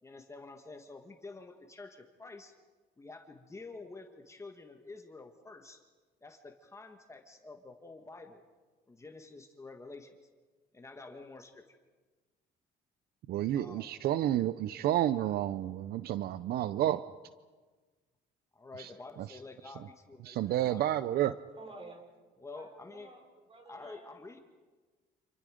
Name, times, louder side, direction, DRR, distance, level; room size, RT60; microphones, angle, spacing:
voice 1, 0.0-2.5 3.0-5.8 6.2-8.4 8.9-10.2 10.7-11.6 13.5-13.9 18.5-20.9 22.4-23.2 23.6-24.4, left 3 dB, 15° left, 1.7 m, -49 dB
voice 2, 13.3-17.0 18.8-18.9 20.3-21.4, right 12 dB, 65° right, 0.6 m, -30 dB
voice 3, 21.6-22.1 22.4-24.2, right 3 dB, 35° right, 4.6 m, -51 dB
29.0 x 27.5 x 5.1 m
cardioid pair, 110°, 17 cm